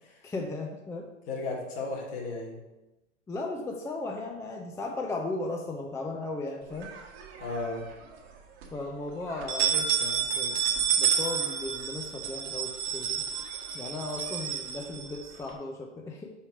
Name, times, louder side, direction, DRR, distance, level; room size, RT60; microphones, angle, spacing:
voice 1, 0.2-1.1 3.3-6.9 8.7-13.2 13.7-16.3, left 2 dB, 10° left, 2 dB, 0.5 m, -36 dB
voice 2, 1.3-2.6 7.4-7.9, left 3 dB, 55° left, -2 dB, 2.6 m, -34 dB
sound 1, 6.8-7.7 8.1-8.2 8.6-8.7 9.3-15.5, right 8 dB, 55° right, 1.5 m, -30 dB
5.6 x 4.7 x 5.9 m, 1.0 s
hypercardioid pair, 115°, 36 cm